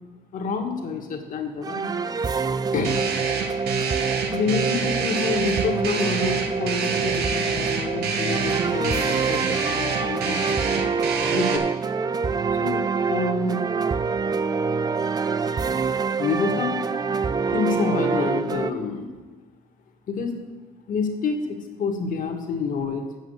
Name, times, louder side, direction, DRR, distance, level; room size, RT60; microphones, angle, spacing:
voice 1, 0.3-2.0 2.7-3.0 4.3-10.6 11.3-11.6 12.5-13.6 16.2-17.0 17.5-19.1 20.1-20.3 20.9-23.0, left 4 dB, 50° left, 2 dB, 1.8 m, -28 dB
sound 1, 1.6-18.7, right 5 dB, 25° right, 0.4 m, -26 dB
sound 2, 2.8-11.6, right 5 dB, 75° right, 1.3 m, -27 dB
8.4 x 6.2 x 8.1 m, 1.3 s
cardioid pair, 110°, 17 cm